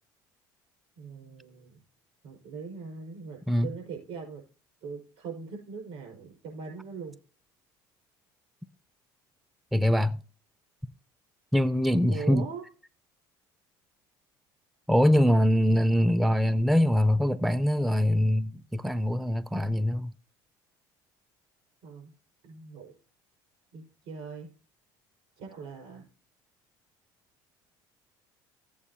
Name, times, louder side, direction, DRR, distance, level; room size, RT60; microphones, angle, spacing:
voice 1, 1.0-1.8 2.2-4.4 4.8-7.2 12.1-12.7 21.8-22.1 22.4-22.9 23.7-24.5 25.4-26.0, right 5 dB, 75° right, 5.2 m, -41 dB
voice 2, 9.7-10.2 11.5-12.5 14.9-20.1, equal, ahead, 0.3 m, -23 dB
14.0 x 8.6 x 2.8 m
supercardioid pair, 90°, 10 cm